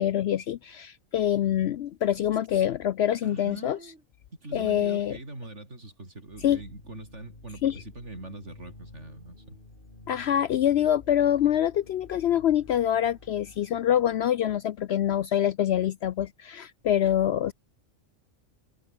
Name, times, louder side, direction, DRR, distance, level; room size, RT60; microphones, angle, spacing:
voice 1, 0.0-3.8 4.5-5.2 6.4-6.6 7.6-7.8 10.1-17.5, left 10 dB, 65° left, 0.7 m, -25 dB
voice 2, 3.2-4.0 4.4-9.6, right 2 dB, 60° right, 6.4 m, -42 dB
sound 1, 6.2-14.4, left 2 dB, 40° left, 4.4 m, -51 dB
omnidirectional pair, 1.4 m